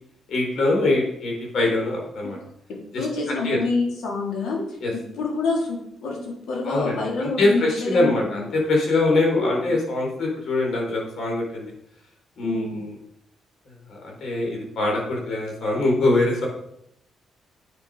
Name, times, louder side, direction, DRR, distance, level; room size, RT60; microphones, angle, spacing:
voice 1, 0.3-2.4 2.9-3.6 4.8-4.9 6.6-11.7 12.4-12.9 13.9-16.5, left 2 dB, 65° left, 0 dB, 4.5 m, -23 dB
voice 2, 2.9-4.7 4.9-8.3 9.3-9.8 12.4-12.8, left 3 dB, 80° left, -2 dB, 3.8 m, -27 dB
9.0 x 7.3 x 5.1 m, 0.75 s
cardioid pair, 105°, 0 cm